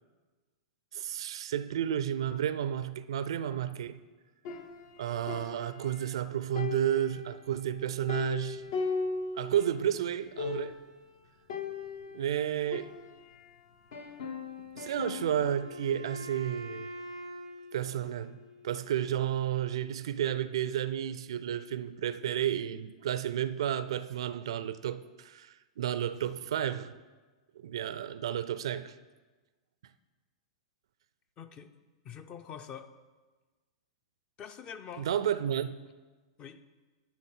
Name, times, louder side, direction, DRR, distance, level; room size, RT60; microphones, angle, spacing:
voice 1, 0.9-4.0 5.0-8.7 9.3-10.8 12.1-12.9 14.8-16.9 17.7-18.4 18.6-26.9 27.6-28.9 35.0-35.8, right 10 dB, 60° right, 0.4 m, -32 dB
sound 1, 4.5-6.2 6.6-9.8 10.1-10.2 10.4-11.0 11.5-13.5 13.9-15.6, left 5 dB, 55° left, 1.0 m, -38 dB
Wind instrument woodwind instrument, 14.8-18.8, equal, 90° left, 1.2 m, -45 dB
voice 2, 31.4-31.7 32.0-33.0 34.4-35.1 36.4-36.6, left 8 dB, 30° left, 0.6 m, -45 dB
10.5 x 3.9 x 7.4 m
figure-of-eight pair, 100°, 3 cm